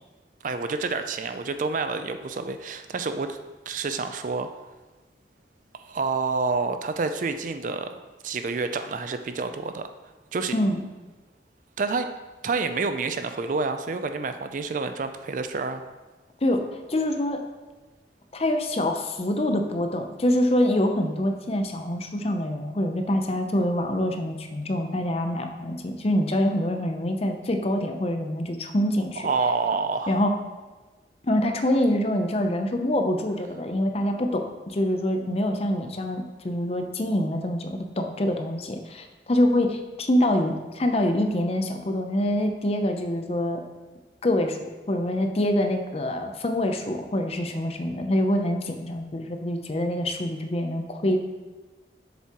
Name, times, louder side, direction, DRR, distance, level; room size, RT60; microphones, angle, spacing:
voice 1, 0.4-3.4 3.7-4.5 5.8-8.0 8.2-9.8 10.3-10.5 11.8-12.1 12.4-15.8 29.2-30.2, right 4 dB, 45° right, 8 dB, 0.4 m, -28 dB
voice 2, 16.4-17.4 18.3-29.3 30.1-30.4 31.2-43.6 44.2-51.2, left 1 dB, 35° left, 5 dB, 0.6 m, -25 dB
7.3 x 7.0 x 3.0 m, 1.2 s
head